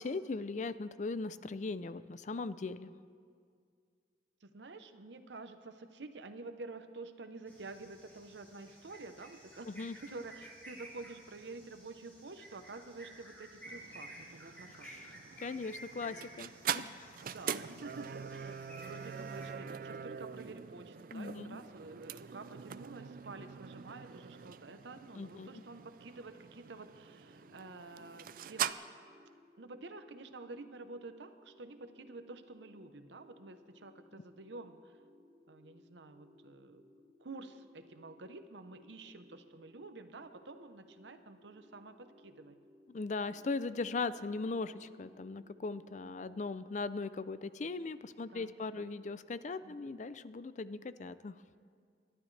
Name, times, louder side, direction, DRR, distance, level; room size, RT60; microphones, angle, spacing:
voice 1, 0.0-2.9 9.7-10.0 14.8-15.0 15.4-17.2 21.1-21.6 25.2-25.6 42.9-51.4, left 3 dB, 45° left, 14 dB, 0.4 m, -39 dB
voice 2, 4.4-14.9 16.0-16.3 17.2-28.8 29.6-35.0 35.5-36.8 37.2-42.6 48.2-49.0 49.6-49.9, right 3 dB, 90° right, 9 dB, 0.9 m, -49 dB
sound 1, 7.5-19.5, right 1 dB, 10° left, 3.1 m, -54 dB
sound 2, 13.7-28.7, right 8 dB, 50° right, 0.4 m, -43 dB
sound 3, 27.0-46.5, left 2 dB, 25° right, 4.5 m, -63 dB
27.5 x 12.0 x 3.3 m, 2.1 s
head